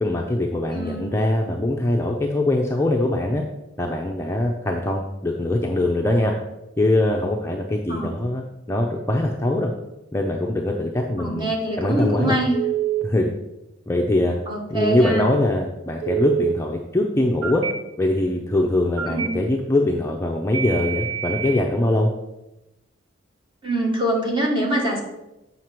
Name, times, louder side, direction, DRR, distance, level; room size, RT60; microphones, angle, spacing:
voice 1, 0.0-3.4 3.8-6.3 6.8-8.4 8.7-9.7 10.1-12.3 13.0-13.3 13.9-14.4 14.7-17.6 18.0-22.1, left 1 dB, 15° left, 0 dB, 0.5 m, -22 dB
voice 2, 0.7-1.2 7.9-8.2 11.2-12.6 14.5-15.3 19.1-19.3 23.6-25.0, right 1 dB, 25° right, -1 dB, 1.5 m, -24 dB
Telephone, 12.5-13.0 16.0-16.5 17.4-17.7 19.0-19.3 20.5-21.6, right 11 dB, 80° right, 0.8 m, -25 dB
7.7 x 5.8 x 4.4 m, 0.94 s
head